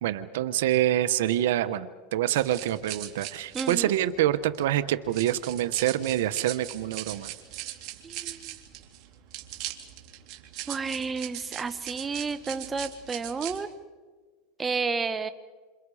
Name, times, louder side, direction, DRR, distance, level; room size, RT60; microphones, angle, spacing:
voice 1, 0.0-7.3, right 12 dB, 80° right, 12 dB, 1.0 m, -26 dB
sound 1, 2.4-13.6, right 13 dB, 55° right, 2.7 m, -40 dB
voice 2, 3.5-3.9 8.0-8.4 10.7-13.7 14.6-15.3, right 4 dB, 20° right, 10 dB, 1.3 m, -31 dB
28.5 x 27.5 x 5.0 m, 1.4 s
supercardioid pair, 120°, 0 cm